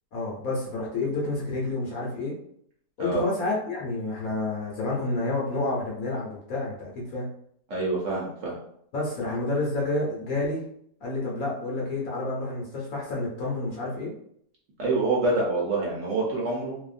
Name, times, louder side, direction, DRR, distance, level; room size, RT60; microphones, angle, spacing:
voice 1, 0.1-2.3 3.0-7.3 8.9-10.6 11.0-14.1, left 2 dB, 65° left, -4 dB, 1.2 m, -29 dB
voice 2, 7.7-8.5 14.8-16.8, right 2 dB, 60° right, -4 dB, 0.9 m, -26 dB
2.7 x 2.4 x 2.4 m, 0.68 s
omnidirectional pair, 1.7 m